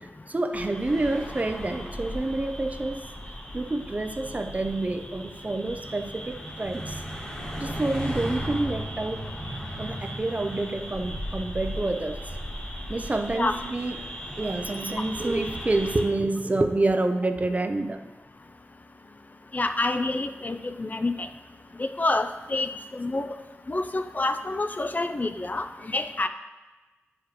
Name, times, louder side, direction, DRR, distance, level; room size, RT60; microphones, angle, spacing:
voice 1, 0.3-3.0 3.5-7.0 7.6-9.2 9.8-12.2 12.9-14.0 14.4-18.0, right 2 dB, 30° right, 7 dB, 0.5 m, -28 dB
sound 1, 0.5-16.0, equal, 20° left, 1.6 m, -36 dB
voice 2, 19.5-21.3 21.8-23.3 23.7-26.3, left 2 dB, 35° left, 8 dB, 0.4 m, -28 dB
9.6 x 4.8 x 3.0 m, 1.2 s
cardioid pair, 60°, 5 cm